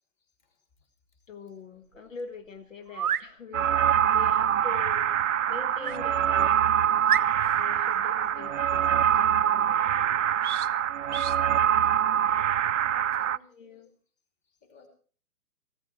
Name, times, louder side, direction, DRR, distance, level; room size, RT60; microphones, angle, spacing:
voice 1, 1.3-3.7 4.1-5.1 5.5-6.6 7.5-10.3 13.2-13.9, left 5 dB, 60° left, 7 dB, 1.8 m, -43 dB
sound 1, 2.0-2.1 2.9-3.3 5.8-6.0 6.5-6.6 7.0-7.7 10.4-10.7 11.1-11.4, right 9 dB, 85° right, 0.8 m, -30 dB
sound 2, 3.5-13.4, right 9 dB, 60° right, 0.5 m, -24 dB
voice 2, 12.1-13.5 14.6-14.9, left 5 dB, 15° left, 4 dB, 2.9 m, -56 dB
15.0 x 14.0 x 4.3 m, 0.40 s
hypercardioid pair, 165°, 44 cm